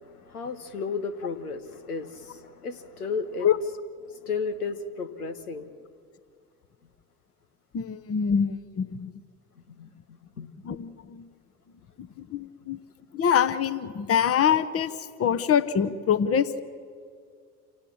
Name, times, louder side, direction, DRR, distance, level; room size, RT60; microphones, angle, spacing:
voice 1, 0.0-3.5 4.1-5.7 9.8-9.9 10.4-10.5, left 4 dB, 85° left, 9 dB, 1.2 m, -33 dB
voice 2, 7.7-9.1 10.6-11.3 12.0-12.8 13.1-16.6, left 8 dB, 30° left, 13 dB, 1.0 m, -25 dB
27.5 x 17.0 x 7.2 m, 2.2 s
figure-of-eight pair, 60°, 44 cm